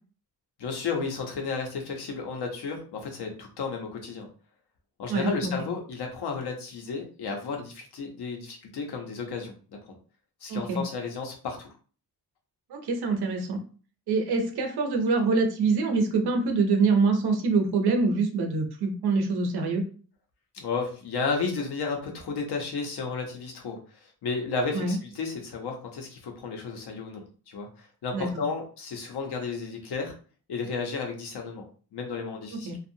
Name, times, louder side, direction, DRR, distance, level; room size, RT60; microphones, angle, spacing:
voice 1, 0.6-4.3 5.0-9.5 9.9-10.0 10.4-11.7 20.5-30.1 30.5-31.7 31.9-32.8, left 4 dB, 90° left, 2 dB, 0.8 m, -33 dB
voice 2, 5.1-5.5 10.5-10.8 12.7-13.6 14.1-19.8 24.7-25.0 28.1-28.3 32.7-32.8, right 4 dB, 80° right, 4 dB, 0.8 m, -25 dB
2.6 x 2.4 x 2.7 m, 0.40 s
wide cardioid pair, 130°, 38 cm